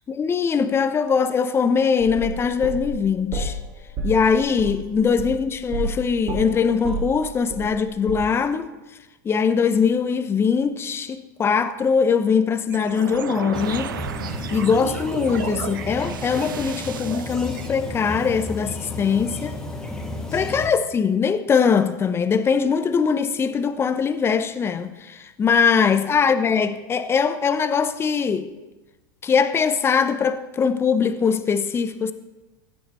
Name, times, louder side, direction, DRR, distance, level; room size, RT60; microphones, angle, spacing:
voice 1, 0.1-3.6 4.0-8.7 9.2-13.9 14.5-19.6 20.3-28.5 29.2-32.1, left 6 dB, 25° left, 0.7 m, -21 dB
sound 1, 2.0-3.6 4.0-6.0 6.3-7.8 8.1-8.2, right 3 dB, 45° right, 3.1 m, -30 dB
sound 2, 12.7-17.7, right 9 dB, 90° right, 0.5 m, -33 dB
sound 3, 13.5-20.7, left 1 dB, 5° left, 1.4 m, -33 dB
16.0 x 6.5 x 4.4 m
hypercardioid pair, 100°, 11 cm